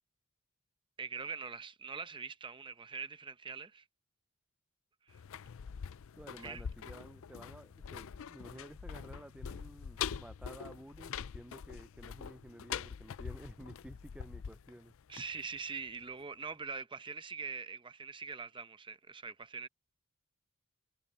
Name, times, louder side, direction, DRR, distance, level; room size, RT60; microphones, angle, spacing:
voice 1, 1.0-3.8 5.1-5.2 6.4-6.6 15.1-19.7, right 5 dB, 20° right, 0.8 m, -43 dB
sound 1, 5.1-15.9 16.2-16.3, left 7 dB, 65° left, 0.4 m, -44 dB
voice 2, 6.2-14.9, right 1 dB, 5° right, 0.3 m, -52 dB
head